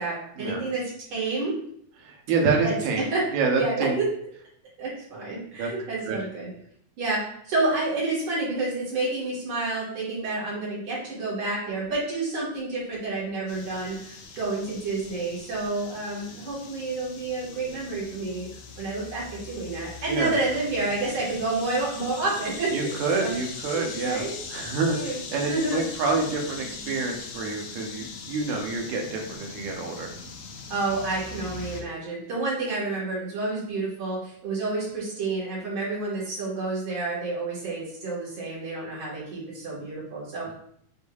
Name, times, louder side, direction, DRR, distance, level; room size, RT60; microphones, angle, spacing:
voice 1, 0.0-1.6 2.6-3.3 3.5-4.0 4.8-6.5 7.0-22.9 23.2-23.3 23.9-24.4 24.8-25.2 25.5-25.9 30.7-40.5, right 3 dB, 50° right, -6 dB, 2.0 m, -29 dB
voice 2, 2.0-3.0 3.3-4.0 5.6-5.7 6.1-6.2 20.1-20.3 22.7-24.2 24.5-30.1 40.5-40.6, right 4 dB, 85° right, 1 dB, 2.2 m, -27 dB
sound 1, 13.5-31.8, left 5 dB, 75° left, 1.6 m, -41 dB
6.6 x 2.6 x 2.3 m, 0.68 s
omnidirectional pair, 3.4 m